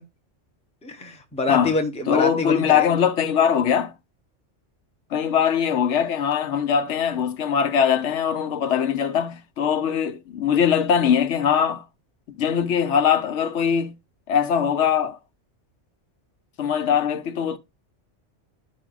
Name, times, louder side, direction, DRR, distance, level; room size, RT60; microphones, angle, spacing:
voice 1, 0.8-2.9, left 3 dB, 5° left, 0.7 m, -26 dB
voice 2, 2.1-3.9 5.1-11.8 12.4-13.9 14.3-15.2 16.6-17.6, left 8 dB, 70° left, 1.0 m, -21 dB
12.5 x 5.0 x 2.4 m
omnidirectional pair, 1.3 m